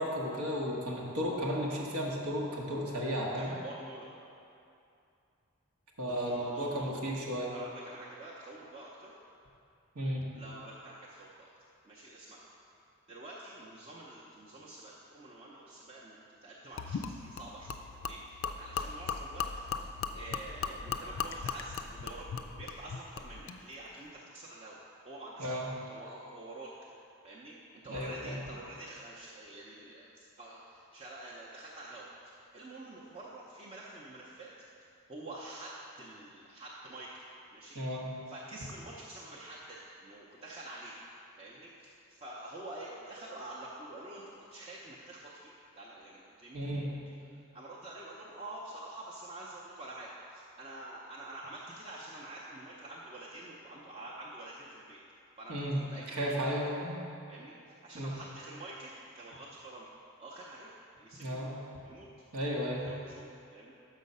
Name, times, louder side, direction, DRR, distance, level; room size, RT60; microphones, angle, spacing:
voice 1, 0.0-3.5 6.0-7.5 9.9-10.2 25.4-25.7 27.9-28.4 37.7-38.1 46.5-46.9 55.5-55.8 56.1-57.0 57.9-58.2 61.2-61.5 62.3-62.9, equal, 90° right, -3 dB, 1.2 m, -34 dB
voice 2, 3.1-4.1 6.0-6.9 7.5-9.1 10.3-11.5 11.8-12.4 13.1-19.5 19.8-24.8 25.0-26.7 27.2-27.5 27.8-34.5 35.1-37.2 37.5-37.8 38.3-40.9 41.4-47.0 47.3-55.0 55.4-56.7 57.3-57.5 57.8-59.9 60.2-60.7 61.0-62.1 62.5-63.7, right 2 dB, 30° right, -7 dB, 0.6 m, -47 dB
Gurgling / Liquid, 16.8-23.6, left 6 dB, 60° left, 0.3 m, -38 dB
6.4 x 5.7 x 5.3 m, 2.6 s
head